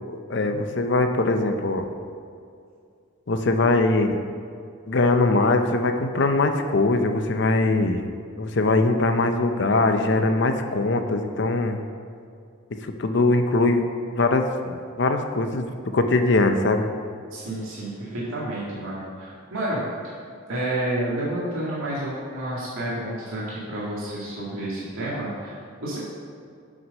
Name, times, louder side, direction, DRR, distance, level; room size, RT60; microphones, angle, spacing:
voice 1, 0.1-1.9 3.3-4.2 4.9-8.1 8.4-11.8 12.8-13.8 14.1-15.7 15.9-16.9, left 2 dB, 55° left, 6 dB, 0.6 m, -21 dB
voice 2, 17.3-20.2 20.5-26.0, right 1 dB, 85° right, -7 dB, 2.1 m, -30 dB
7.8 x 6.2 x 5.4 m, 2.3 s
head